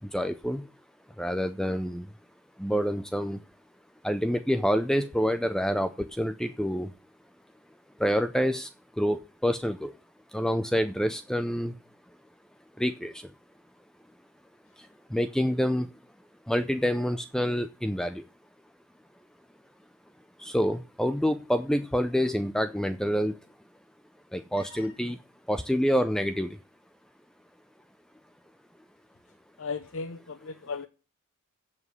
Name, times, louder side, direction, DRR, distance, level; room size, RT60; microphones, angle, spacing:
voice 1, 0.1-0.6 1.2-2.0 2.6-3.4 4.0-6.9 8.0-8.7 9.0-9.9 10.3-11.7 12.8-13.2 15.1-15.9 16.5-18.2 20.4-23.3 24.3-25.2 25.5-26.6, equal, 5° left, 0.5 m, -27 dB
voice 2, 24.5-24.9 29.6-30.9, left 4 dB, 65° left, 0.7 m, -37 dB
7.9 x 7.3 x 8.2 m
head